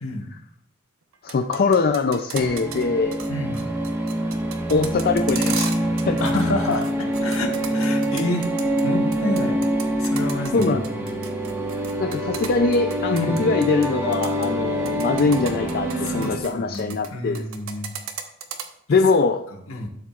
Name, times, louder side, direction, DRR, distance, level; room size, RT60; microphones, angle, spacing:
sound 1, 1.1-2.8 3.1-3.3 3.5-6.4 6.7-8.8 9.1-13.9 14.1-14.5 14.9-17.1 17.3-18.6, right 7 dB, 75° right, 1.0 m, -34 dB
voice 1, 1.2-3.2 4.7-5.8 6.1-6.2 10.5-10.8 12.0-17.4 18.9-19.4, left 4 dB, 45° left, 6 dB, 0.4 m, -22 dB
sound 2, 2.3-16.4, equal, 10° right, 1.4 m, -25 dB
voice 2, 3.3-3.7 6.2-6.9 7.2-8.5 8.8-9.6 10.0-11.1 13.1-13.4 16.1-17.9 19.7-19.9, left 2 dB, 70° left, 1 dB, 1.6 m, -28 dB
12.0 x 7.4 x 2.4 m, 0.68 s
head